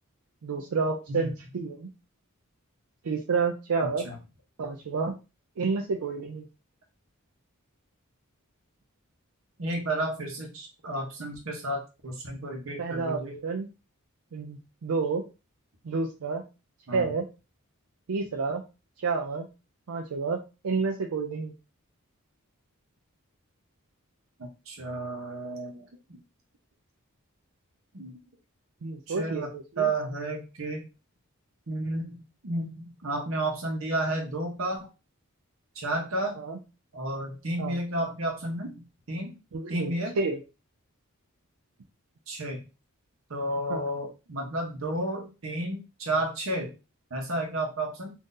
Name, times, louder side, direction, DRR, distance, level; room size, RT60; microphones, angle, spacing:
voice 1, 0.4-1.9 3.0-4.1 4.6-5.1 5.6-6.5 12.8-13.7 14.3-15.2 15.8-16.4 16.9-17.3 18.1-18.6 19.0-19.5 19.9-21.5 28.8-29.9 36.4-36.6 37.6-37.8 39.5-40.4 43.7-43.8, right 4 dB, 85° right, 2 dB, 0.4 m, -30 dB
voice 2, 9.6-13.4 16.9-17.1 24.4-26.2 27.9-28.2 29.1-29.5 29.8-30.8 31.7-34.8 35.7-36.4 36.9-39.4 39.7-40.2 42.3-42.6 43.3-46.7 47.1-48.1, right 1 dB, 65° right, 1 dB, 0.8 m, -32 dB
3.7 x 2.5 x 2.6 m, 0.29 s
head